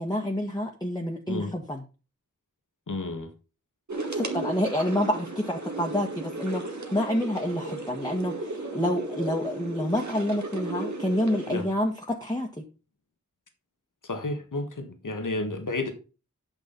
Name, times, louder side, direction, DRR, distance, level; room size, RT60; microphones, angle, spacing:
voice 1, 0.0-1.8 4.1-12.5, equal, 15° left, 1.6 m, -28 dB
voice 2, 2.9-3.3 11.5-11.6 14.1-15.9, left 2 dB, 85° left, 1.6 m, -31 dB
sound 1, 3.9-11.6, right 2 dB, 70° right, 1.9 m, -35 dB
9.7 x 6.2 x 4.0 m
wide cardioid pair, 45°, 30 cm